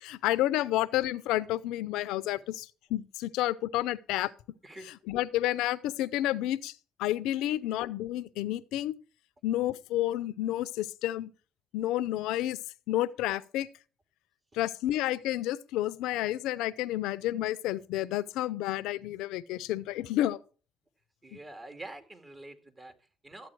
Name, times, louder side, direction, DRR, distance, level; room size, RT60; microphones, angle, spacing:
voice 1, 0.0-4.3 5.1-6.7 7.0-8.9 9.4-11.3 11.7-12.6 12.9-13.7 14.5-20.4, left 14 dB, 80° left, 0.6 m, -30 dB
voice 2, 21.2-23.5, right 2 dB, 25° right, 2.1 m, -47 dB
13.0 x 8.3 x 4.6 m
supercardioid pair, 80°, 0 cm